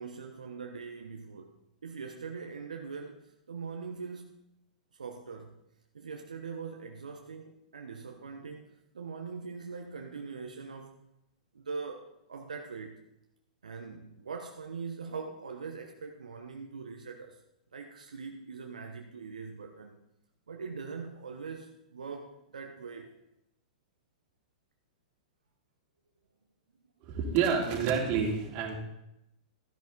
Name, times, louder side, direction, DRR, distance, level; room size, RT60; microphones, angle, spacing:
voice 1, 0.0-1.5 1.8-4.4 4.9-5.6 5.9-8.6 8.9-11.0 11.5-12.9 13.6-17.4 17.7-20.0 20.5-23.1, right 5 dB, 80° right, 3 dB, 1.1 m, -42 dB
voice 2, 27.0-28.7, right 6 dB, 40° right, -1 dB, 3.2 m, -28 dB
13.0 x 10.5 x 4.1 m, 0.84 s
hypercardioid pair, 110°, 4 cm